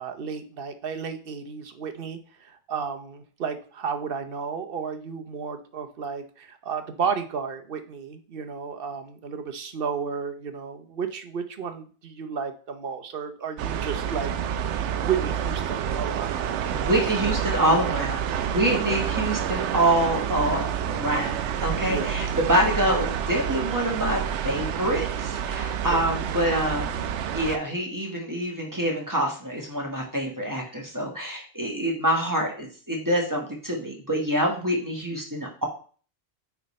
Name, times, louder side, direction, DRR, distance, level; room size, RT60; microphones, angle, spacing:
voice 1, 0.0-14.3 14.9-16.6 18.7-19.0 21.9-22.1 25.9-26.0, right 6 dB, 60° right, 8 dB, 0.9 m, -32 dB
sound 1, 13.6-27.6, right 8 dB, 90° right, 0.9 m, -28 dB
voice 2, 16.7-35.7, right 1 dB, 15° right, 0 dB, 1.4 m, -26 dB
9.2 x 3.5 x 4.2 m, 0.41 s
omnidirectional pair, 1.1 m